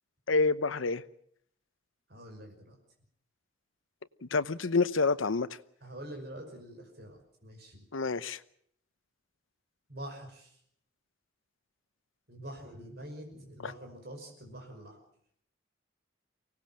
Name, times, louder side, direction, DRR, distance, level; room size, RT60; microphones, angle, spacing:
voice 1, 0.3-1.0 4.2-5.5 7.9-8.4 13.6-13.7, left 3 dB, 90° left, 14 dB, 0.9 m, -28 dB
voice 2, 2.1-2.8 5.8-7.8 9.9-10.6 12.3-15.0, right 1 dB, 55° right, 2 dB, 5.6 m, -45 dB
24.5 x 18.5 x 7.5 m, 0.67 s
head